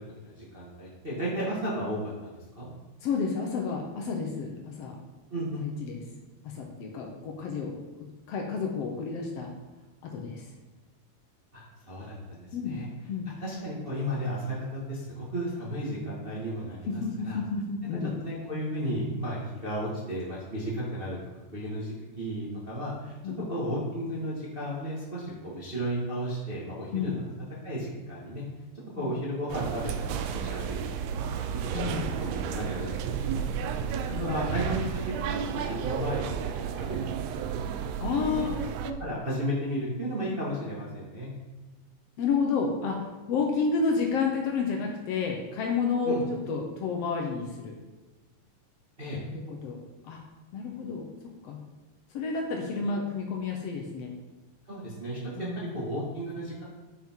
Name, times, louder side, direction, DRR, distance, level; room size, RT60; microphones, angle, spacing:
voice 1, 0.2-2.7 5.3-5.6 11.5-12.9 13.4-17.4 18.2-21.2 21.5-23.1 23.5-27.2 27.6-28.4 28.9-31.0 31.5-31.6 32.0-33.3 34.2-37.3 37.6-37.7 38.1-38.5 38.8-41.3 46.0-46.2 49.0-49.2 52.9-53.0 54.7-56.6, equal, 40° right, -7 dB, 0.7 m, -34 dB
voice 2, 3.0-4.9 5.6-6.0 6.4-7.8 8.3-9.5 10.0-10.5 12.5-12.8 13.1-13.3 16.9-18.1 23.2-23.5 26.9-27.1 28.9-29.1 31.7-32.0 34.1-34.3 38.0-38.6 42.2-47.7 49.3-49.8 50.0-50.2 50.5-51.1 51.4-51.6 52.1-54.1 55.4-55.8, left 5 dB, 75° left, 0 dB, 1.4 m, -30 dB
sound 1, 29.5-38.9, right 7 dB, 85° right, 1.7 m, -32 dB
8.9 x 5.8 x 4.5 m, 1.2 s
omnidirectional pair, 4.1 m